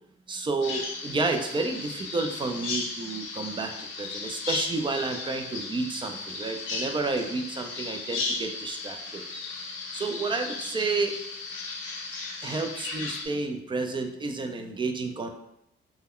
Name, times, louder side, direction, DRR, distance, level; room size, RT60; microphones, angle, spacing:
voice 1, 0.3-3.7 4.0-9.2 9.9-11.1 12.4-15.3, right 3 dB, 25° right, 5 dB, 0.4 m, -30 dB
Bird vocalization bird call bird song, 0.6-13.3, left 3 dB, 85° left, 0.6 m, -35 dB
2.2 x 2.1 x 3.5 m, 0.79 s
cardioid pair, 90°, 20 cm